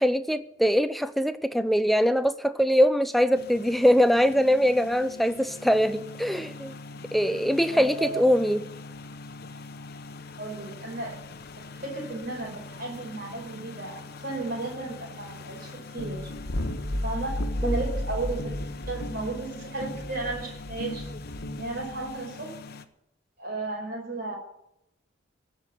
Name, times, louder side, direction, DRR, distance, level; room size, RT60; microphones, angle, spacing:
voice 1, 0.0-6.7 7.1-8.7 17.6-17.8, equal, ahead, 12 dB, 0.5 m, -22 dB
sound 1, 3.3-22.9, left 3 dB, 50° left, 0.9 m, -43 dB
voice 2, 7.7-8.3 10.4-11.2 11.8-16.2 17.0-17.4 17.6-18.6 18.9-21.1 21.6-22.5 23.4-24.4, right 3 dB, 45° right, -1 dB, 5.0 m, -34 dB
sound 2, 16.0-22.2, left 1 dB, 70° left, 1.3 m, -33 dB
17.0 x 6.0 x 9.7 m, 0.82 s
head